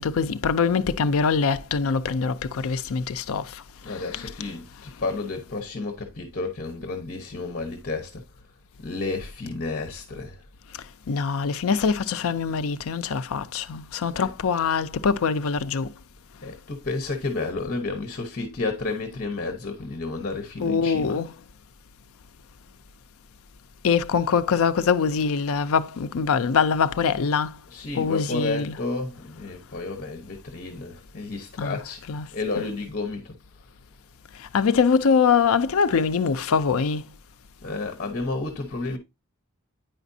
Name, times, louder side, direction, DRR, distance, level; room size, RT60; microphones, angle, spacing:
voice 1, 0.0-4.3 11.1-15.9 20.6-21.3 23.8-27.6 28.0-28.8 31.6-31.8 32.1-32.6 34.4-37.1, left 5 dB, 65° left, 0.5 m, -23 dB
voice 2, 3.8-4.7 5.0-8.2 8.8-10.4 14.1-14.3 16.4-21.2 27.7-33.4 37.6-39.0, left 3 dB, 40° left, 1.0 m, -31 dB
9.0 x 5.0 x 2.6 m
head